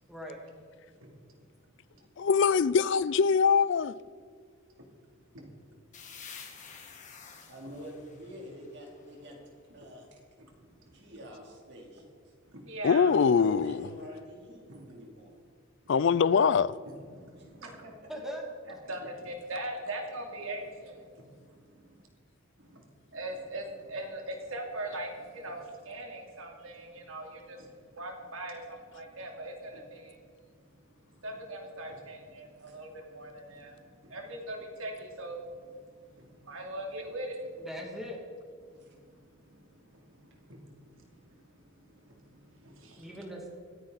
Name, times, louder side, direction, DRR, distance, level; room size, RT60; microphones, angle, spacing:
voice 1, 0.1-0.4 18.1-18.4 37.6-38.2 43.0-43.5, equal, ahead, 2.3 m, -40 dB
voice 2, 2.2-3.9 12.8-13.8 15.9-16.7, left 6 dB, 60° left, 0.4 m, -23 dB
sound 1, 5.9-9.5, left 6 dB, 35° left, 1.8 m, -50 dB
voice 3, 7.5-9.4 9.7-10.2 10.9-12.2 13.0-15.3 17.4-17.9 32.7-32.8 38.8-38.9, equal, 55° right, 3.8 m, -47 dB
voice 4, 10.4-10.9 12.5-13.2 14.7-14.9 17.1-17.9 18.9-21.8 22.7-22.8 23.1-30.2 31.0-35.8 36.1-37.7 38.6-43.1, right 1 dB, 75° right, 2.8 m, -42 dB
26.0 x 9.7 x 4.1 m
head